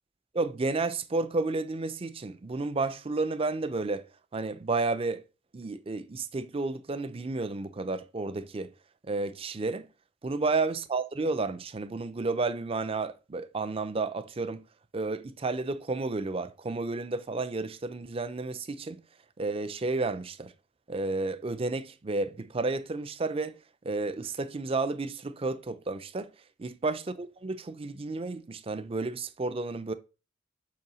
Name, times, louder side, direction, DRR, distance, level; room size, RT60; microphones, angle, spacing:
voice 1, 0.3-4.1 4.3-5.2 5.5-8.7 9.1-9.9 10.2-14.6 14.9-19.0 19.4-20.5 20.9-23.6 23.8-26.3 26.6-29.9, right 3 dB, 30° right, 0.5 m, -31 dB
5.7 x 4.6 x 6.2 m
head